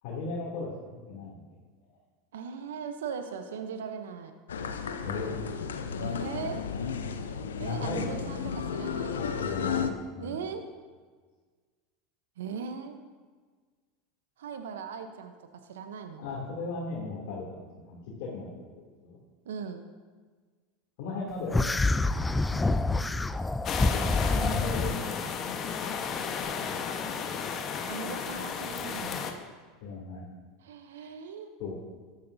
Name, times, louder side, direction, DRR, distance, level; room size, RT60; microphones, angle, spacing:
voice 1, 0.0-1.5 5.0-5.3 7.6-8.3 9.1-10.3 16.2-17.4 17.7-18.5 18.8-19.2 21.0-22.1 22.5-22.9 23.9-25.3 29.8-30.2 31.0-31.1 31.6-31.7, left 3 dB, 65° left, -5 dB, 2.7 m, -36 dB
voice 2, 2.3-4.3 6.0-6.6 7.6-9.4 10.2-10.6 12.4-13.0 14.4-15.3 15.6-16.3 19.4-19.9 24.0-24.2 26.9-27.4 27.9-29.3 30.6-31.5, right 6 dB, 80° right, 7 dB, 0.8 m, -39 dB
sound 1, 4.5-9.9, left 6 dB, 90° left, 0.7 m, -33 dB
sound 2, 21.5-24.9, left 2 dB, 10° left, 0.4 m, -27 dB
sound 3, 23.7-29.3, left 6 dB, 40° left, 1.1 m, -33 dB
13.5 x 11.0 x 2.7 m, 1.5 s
hypercardioid pair, 90°, 0 cm